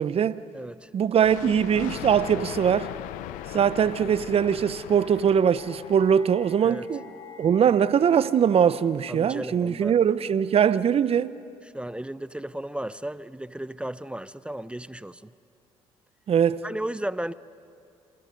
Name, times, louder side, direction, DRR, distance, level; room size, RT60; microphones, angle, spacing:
voice 1, 0.0-0.4 0.9-2.9 3.5-7.0 7.4-11.4 16.3-16.6, right 8 dB, 50° right, 0.9 m, -22 dB
voice 2, 0.5-0.9 6.6-6.8 9.1-10.0 11.7-15.3 16.6-17.3, right 1 dB, 10° right, 0.6 m, -34 dB
Thunder, 1.2-6.6, left 13 dB, 80° left, 0.9 m, -38 dB
sound 1, 4.1-11.1, left 7 dB, 50° left, 3.2 m, -51 dB
29.0 x 27.5 x 5.3 m
supercardioid pair, 60°, 13 cm